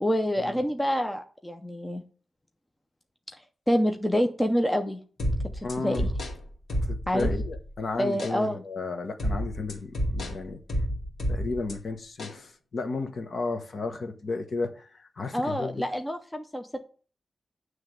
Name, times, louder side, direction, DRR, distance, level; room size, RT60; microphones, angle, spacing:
voice 1, 0.0-2.0 3.7-5.0 5.8-6.0 7.1-7.3 7.9-8.6 15.3-16.9, equal, 5° left, 0.6 m, -27 dB
sound 1, 5.2-7.7 8.2-8.4 9.2-11.7 12.2-12.4, equal, 70° left, 2.0 m, -30 dB
voice 2, 5.6-6.1 6.9-10.6 11.3-15.8, left 3 dB, 50° left, 1.1 m, -33 dB
9.4 x 3.3 x 6.6 m
wide cardioid pair, 160°, 0 cm